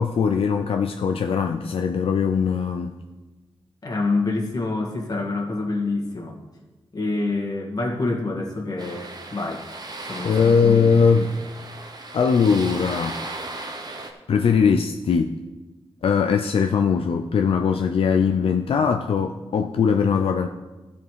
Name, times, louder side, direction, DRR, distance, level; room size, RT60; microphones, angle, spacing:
voice 1, 0.0-2.9 10.2-11.3 12.1-13.2 14.3-15.4 16.0-20.5, left 6 dB, 75° left, 4 dB, 0.5 m, -20 dB
voice 2, 3.8-6.4 6.9-9.6 10.1-11.3, left 3 dB, 40° left, 1 dB, 1.9 m, -27 dB
sound 1, 8.8-14.1, right 2 dB, 45° right, 1.1 m, -36 dB
14.5 x 5.2 x 4.7 m, 1.2 s
wide cardioid pair, 105°, 10 cm